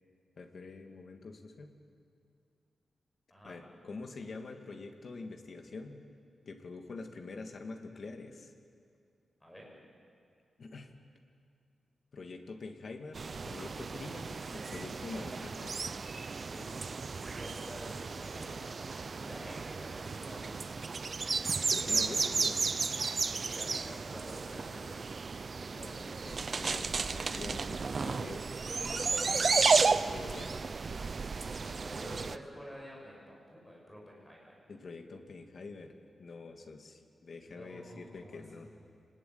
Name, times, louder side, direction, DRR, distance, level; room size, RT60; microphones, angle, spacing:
voice 1, 0.4-1.8 3.4-6.0 6.5-8.5 10.6-10.9 12.1-15.7 21.7-22.6 25.7-28.6 29.3-30.5 34.7-38.7, left 3 dB, 45° left, 4 dB, 2.1 m, -46 dB
sound 1, 13.1-32.4, right 4 dB, 35° right, 0.6 m, -33 dB
voice 2, 16.5-21.2 21.8-22.2 23.3-25.1 28.8-30.0 31.5-34.6 37.4-38.9, equal, 10° left, -2 dB, 6.4 m, -50 dB
27.5 x 20.0 x 9.5 m, 2.3 s
wide cardioid pair, 175°, 0 cm